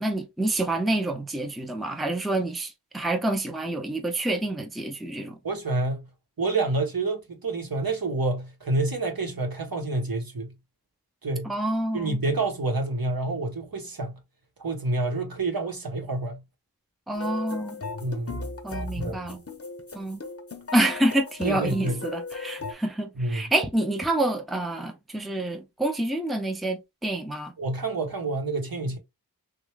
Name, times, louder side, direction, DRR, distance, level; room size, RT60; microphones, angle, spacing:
voice 1, 0.0-5.4 11.4-12.2 17.1-17.8 18.6-19.4 19.9-20.2 20.7-27.5, right 1 dB, ahead, 0.6 m, -27 dB
voice 2, 5.4-6.1 6.4-10.5 11.2-11.5 11.9-14.2 14.6-16.4 18.0-18.4 19.0-19.2 21.4-22.0 23.2-23.5 27.6-29.0, right 2 dB, 60° right, 1.0 m, -28 dB
sound 1, 17.1-22.7, left 3 dB, 35° left, 0.7 m, -37 dB
3.1 x 2.4 x 3.2 m
wide cardioid pair, 45°, 40 cm